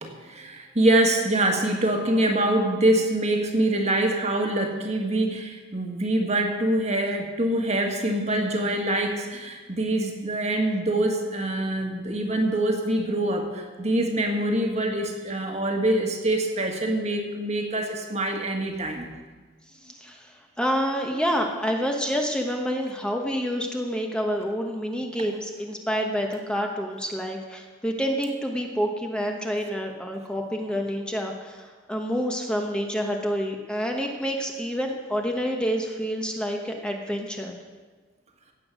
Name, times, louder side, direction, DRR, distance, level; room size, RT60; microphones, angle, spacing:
voice 1, 0.0-19.2, right 1 dB, 35° right, 3 dB, 1.7 m, -25 dB
voice 2, 19.8-37.6, equal, 5° left, 2 dB, 1.1 m, -28 dB
16.5 x 8.4 x 6.3 m, 1.4 s
head